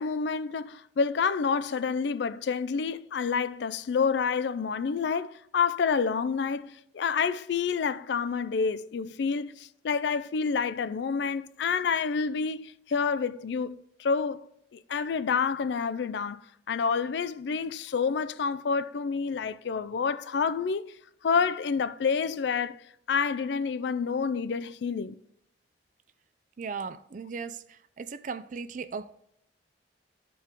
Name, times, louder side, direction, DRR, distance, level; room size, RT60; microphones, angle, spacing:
voice 1, 0.0-16.4 16.7-20.9 21.2-22.8 23.1-25.2, left 5 dB, 70° left, 0.4 m, -28 dB
voice 2, 26.6-29.1, right 5 dB, 45° right, 0.4 m, -37 dB
12.5 x 4.6 x 3.7 m
head